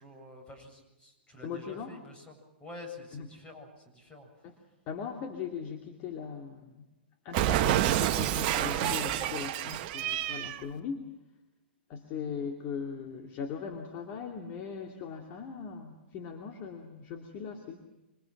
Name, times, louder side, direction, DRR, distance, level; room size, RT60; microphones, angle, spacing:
voice 1, 0.0-2.3 2.6-4.3, left 2 dB, 20° left, 4 dB, 7.8 m, -48 dB
voice 2, 1.4-1.9 3.1-3.3 4.4-4.5 4.9-6.8 7.2-11.1 11.9-17.9, left 6 dB, 35° left, 3 dB, 2.7 m, -39 dB
Cat, 7.3-10.6, right 12 dB, 40° right, 1.2 m, -28 dB
27.0 x 25.5 x 6.1 m, 0.99 s
figure-of-eight pair, 115°, 6 cm